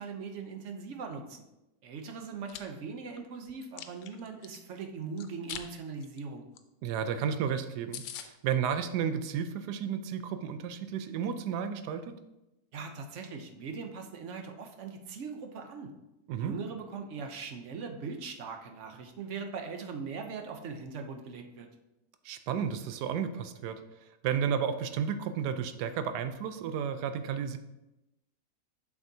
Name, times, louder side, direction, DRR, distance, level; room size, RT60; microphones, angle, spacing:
voice 1, 0.0-1.4 1.8-6.5 12.7-15.9 16.4-21.7, right 5 dB, 60° right, 5 dB, 0.9 m, -40 dB
Chewing mastication, 2.2-2.6 3.1-4.6 5.2-5.7 6.0-6.2 6.6-6.7 6.9-7.0 7.4-7.5 7.6-7.7 7.9-8.3, left 10 dB, 85° left, 1.2 m, -42 dB
voice 2, 6.8-12.2 16.3-16.5 22.2-23.8 24.2-27.6, right 7 dB, 85° right, 9 dB, 1.2 m, -32 dB
7.5 x 6.0 x 2.7 m, 0.93 s
omnidirectional pair, 1.7 m